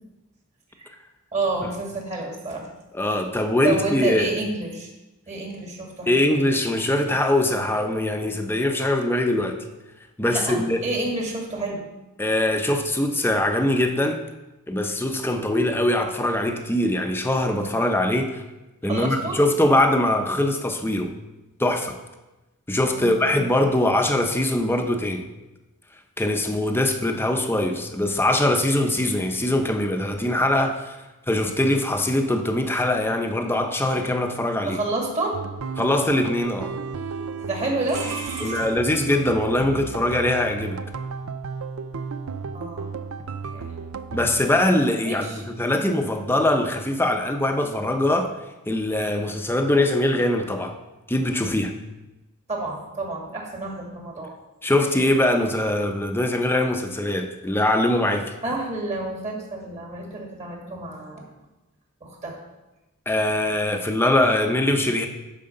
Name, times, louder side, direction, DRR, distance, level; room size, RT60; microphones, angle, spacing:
voice 1, 1.3-2.6 3.6-4.9 5.3-6.1 10.3-11.8 18.8-19.4 22.9-23.2 34.6-35.4 37.4-38.7 42.5-42.9 43.5-43.7 45.0-45.4 45.7-45.8 52.5-54.4 58.4-61.2 62.0-62.4, right 2 dB, 35° right, 0 dB, 2.0 m, -29 dB
voice 2, 2.9-4.2 6.1-9.6 10.2-10.8 12.2-14.2 14.7-18.4 18.8-21.1 21.6-22.0 22.7-25.3 26.2-31.0 31.3-34.8 35.8-36.7 38.4-40.8 44.1-48.3 48.7-50.7 51.1-51.7 54.6-58.3 63.1-65.1, left 1 dB, 10° left, 5 dB, 0.7 m, -22 dB
sound 1, 35.3-44.4, right 5 dB, 75° right, 0.5 m, -34 dB
9.5 x 5.0 x 6.5 m, 1.0 s
head